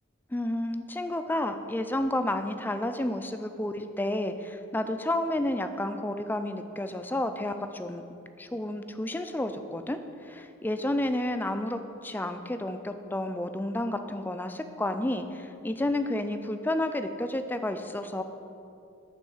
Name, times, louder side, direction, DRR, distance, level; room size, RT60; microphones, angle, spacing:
voice 1, 0.3-8.0 8.4-18.2, left 1 dB, 10° left, 8 dB, 0.3 m, -31 dB
9.2 x 3.7 x 7.0 m, 2.6 s
head